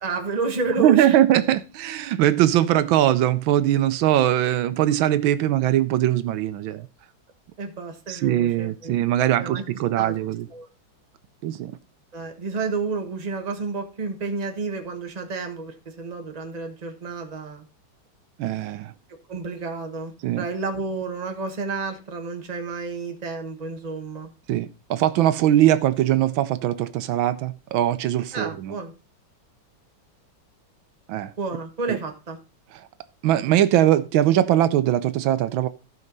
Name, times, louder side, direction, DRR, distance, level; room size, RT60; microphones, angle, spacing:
voice 1, 0.0-1.2 7.6-8.9 9.4-9.6 10.0-10.1 10.5-10.7 12.1-17.6 19.3-24.3 28.3-28.9 31.4-32.4, right 4 dB, 25° right, 1.2 m, -30 dB
voice 2, 0.8-6.9 8.1-10.5 11.4-11.7 18.4-18.9 20.2-20.4 24.5-28.7 31.1-31.3 31.9-32.0 32.7-32.9 33.2-35.7, right 12 dB, 80° right, 1.4 m, -21 dB
15.0 x 5.5 x 3.9 m
omnidirectional pair, 2.2 m